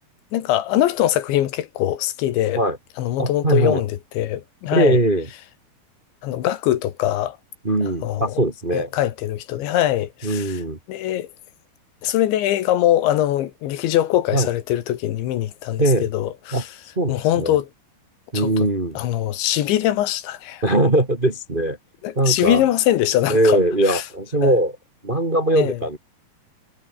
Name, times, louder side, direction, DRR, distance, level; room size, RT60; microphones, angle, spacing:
voice 1, 0.3-2.6 3.0-5.0 6.2-7.4 8.0-8.4 8.7-10.6 10.9-11.3 12.0-16.7 17.1-17.7 18.3-18.7 19.0-20.6 22.0-23.6 23.8-24.0 24.4-24.6 25.6-25.8, left 13 dB, 75° left, 3.9 m, -22 dB
voice 2, 3.2-3.8 4.7-5.3 7.6-8.9 10.2-10.8 14.3-14.5 15.8-16.1 16.5-16.6 16.9-17.6 18.3-19.0 20.6-21.8 22.1-22.6 23.3-24.8 25.0-26.0, right 1 dB, 70° right, 0.4 m, -20 dB
omnidirectional pair, 5.5 m